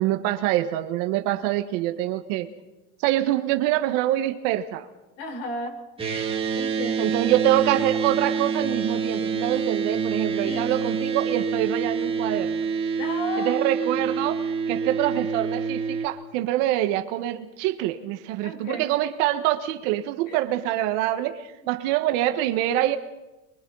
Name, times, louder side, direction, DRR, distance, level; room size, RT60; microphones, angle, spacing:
voice 1, 0.0-2.5 3.0-4.9 7.0-12.6 13.4-23.0, right 13 dB, 55° right, 7 dB, 1.6 m, -25 dB
voice 2, 5.2-5.8 6.5-7.2 10.4-11.1 13.0-13.7 18.4-18.9 20.3-20.4, left 2 dB, 55° left, 4 dB, 4.7 m, -34 dB
sound 1, 6.0-16.1, right 5 dB, 15° right, 2.5 m, -27 dB
29.5 x 23.5 x 4.1 m, 1.0 s
supercardioid pair, 145°, 44 cm